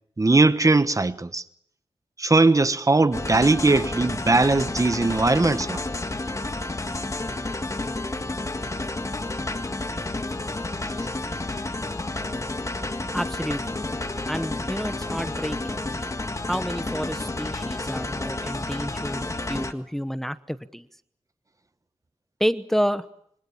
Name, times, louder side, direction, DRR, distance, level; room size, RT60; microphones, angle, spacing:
voice 1, 0.2-1.4 2.2-5.8, right 3 dB, 30° right, 1.2 m, -20 dB
sound 1, 3.1-19.7, left 2 dB, 30° left, 1.8 m, -30 dB
voice 2, 13.1-13.6 14.3-15.8 16.5-20.9 22.4-23.1, equal, 5° left, 1.0 m, -29 dB
26.0 x 25.0 x 7.2 m
wide cardioid pair, 70°, 11 cm